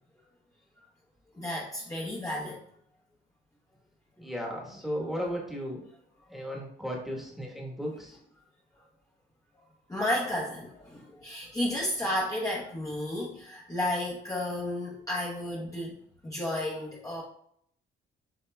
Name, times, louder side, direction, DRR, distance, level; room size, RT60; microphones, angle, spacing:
voice 1, 1.4-2.6 9.9-16.0 16.2-17.2, left 1 dB, 15° left, -5 dB, 0.9 m, -32 dB
voice 2, 4.2-5.8 6.3-8.2, equal, ahead, -2 dB, 1.2 m, -35 dB
7.5 x 2.8 x 2.2 m, 0.68 s
cardioid pair, 90°, 20 cm